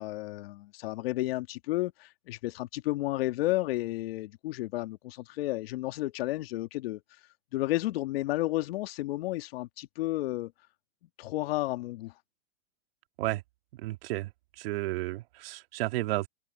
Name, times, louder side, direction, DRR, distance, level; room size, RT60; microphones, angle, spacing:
voice 1, 0.0-7.0 7.5-10.5 11.2-12.1, left 18 dB, 65° left, 2.0 m, -32 dB
voice 2, 13.8-14.3 14.6-16.3, right 18 dB, 65° right, 2.1 m, -32 dB
open air
hypercardioid pair, 115°, 32 cm